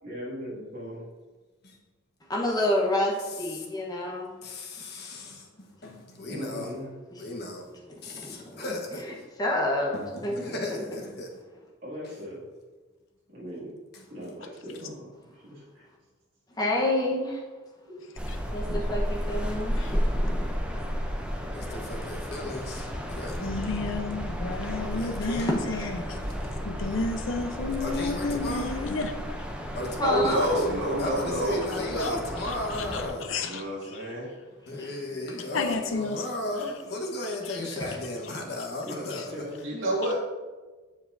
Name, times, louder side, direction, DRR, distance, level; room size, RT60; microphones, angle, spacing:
voice 1, 0.0-1.1 6.3-6.9 11.8-12.4 13.3-13.7 14.1-15.9 17.9-18.0 31.6-32.2 38.8-39.6, equal, 50° right, 2.2 m, -39 dB
voice 2, 2.3-4.3 8.1-8.2 8.5-9.0 9.4-9.9 10.2-10.8 16.6-17.4 18.5-20.4 25.2-25.9 30.0-30.4 34.8-35.2 37.8-38.0, left 1 dB, 20° left, 1.0 m, -29 dB
voice 3, 4.4-5.4 5.8-6.7 7.2-7.6 8.0-9.0 9.9-11.3 21.5-23.4 24.9-25.5 26.4-26.6 27.8-28.7 29.7-30.6 31.0-33.3 34.7-39.2, left 2 dB, 55° left, 1.2 m, -35 dB
sound 1, 18.2-33.1, equal, 5° right, 0.6 m, -33 dB
voice 4, 23.4-26.2 26.6-29.1 32.0-32.1 32.4-34.1 35.5-36.3 36.6-36.7 37.3-37.6 39.1-39.2, left 3 dB, 80° left, 0.7 m, -32 dB
voice 5, 30.0-31.6 33.4-34.3 39.6-40.1, equal, 80° right, 2.1 m, -27 dB
7.3 x 7.2 x 2.6 m
head